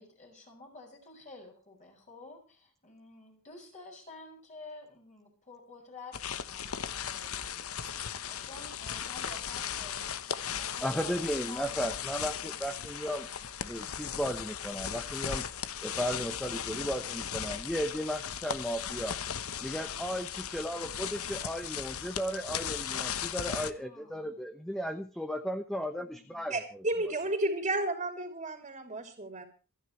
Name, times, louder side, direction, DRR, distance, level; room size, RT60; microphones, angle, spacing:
voice 1, 0.0-7.7 8.3-12.5 23.5-24.4 26.0-26.5, left 3 dB, 35° left, 1 dB, 6.7 m, -51 dB
sound 1, 6.1-23.7, left 8 dB, 70° left, 1.1 m, -37 dB
voice 2, 10.8-13.3 13.6-15.4 15.8-19.2 19.6-26.5, equal, ahead, 8 dB, 1.0 m, -35 dB
voice 3, 26.5-29.4, right 2 dB, 30° right, 5 dB, 3.0 m, -32 dB
28.0 x 10.0 x 3.2 m, 0.35 s
head